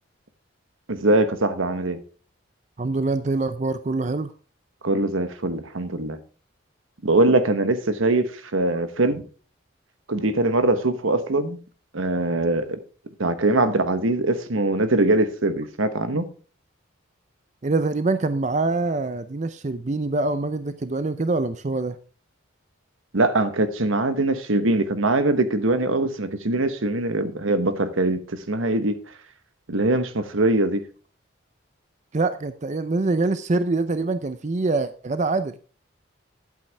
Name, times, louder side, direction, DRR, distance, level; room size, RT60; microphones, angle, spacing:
voice 1, 0.9-2.0 4.8-6.2 7.0-9.2 10.1-11.6 11.9-12.8 13.2-16.3 23.1-28.9 29.7-30.8, right 2 dB, 80° right, 1.2 m, -22 dB
voice 2, 2.8-4.3 17.6-22.0 32.1-35.6, right 3 dB, 35° right, 0.5 m, -24 dB
12.0 x 8.1 x 3.4 m
head